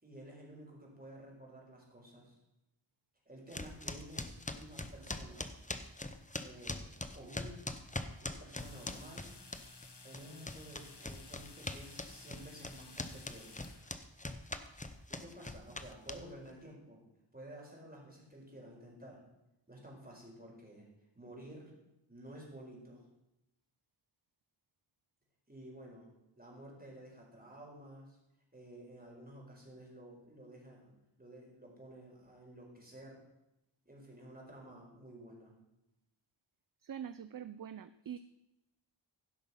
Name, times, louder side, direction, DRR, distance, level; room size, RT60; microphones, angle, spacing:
voice 1, 0.0-2.4 3.3-5.4 6.4-6.8 7.1-7.7 8.2-9.3 10.0-13.5 15.1-17.0 17.3-19.2 19.7-20.9 21.1-21.7 22.1-23.0 25.5-26.1 26.4-28.2 28.5-30.9 31.2-33.2 33.8-35.5, right 1 dB, 20° right, -2 dB, 4.5 m, -52 dB
sound 1, 3.5-9.9 10.1-16.5, left 2 dB, 15° left, 0.8 m, -42 dB
sound 2, 8.6-14.0, left 3 dB, 55° left, 1.4 m, -55 dB
voice 2, 36.8-38.2, right 9 dB, 45° right, 13 dB, 0.4 m, -44 dB
16.0 x 6.1 x 5.6 m, 0.93 s
wide cardioid pair, 60°, 47 cm